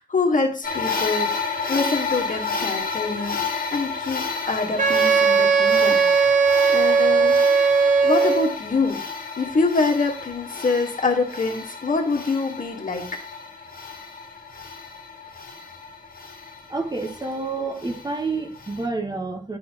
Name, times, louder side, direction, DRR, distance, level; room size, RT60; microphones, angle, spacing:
voice 1, 0.0-7.4 8.0-9.0 9.4-13.2, left 3 dB, 65° left, 1.5 m, -25 dB
sound 1, 0.6-18.9, left 5 dB, 80° left, 1.3 m, -32 dB
Wind instrument woodwind instrument, 4.8-8.5, right 5 dB, 60° right, 0.7 m, -18 dB
voice 2, 16.7-19.6, right 3 dB, 30° right, 1.2 m, -29 dB
11.0 x 4.2 x 2.9 m
wide cardioid pair, 80°, 15 cm